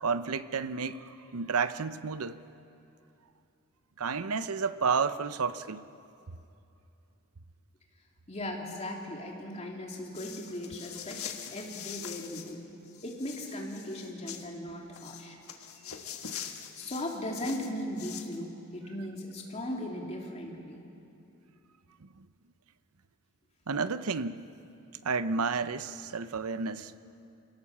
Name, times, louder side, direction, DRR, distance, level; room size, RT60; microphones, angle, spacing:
voice 1, 0.0-2.4 4.0-5.8 15.9-16.0 22.0-22.3 23.7-24.4 25.0-26.9, right 5 dB, 85° right, 13 dB, 0.7 m, -31 dB
voice 2, 8.3-11.2 11.5-12.6 13.0-15.3 16.8-20.8, left 1 dB, 30° left, -1 dB, 3.0 m, -38 dB
sound 1, 10.1-12.5 12.9-14.5 14.9-18.4, left 9 dB, 75° left, 1.5 m, -43 dB
28.0 x 17.5 x 7.3 m, 2.7 s
head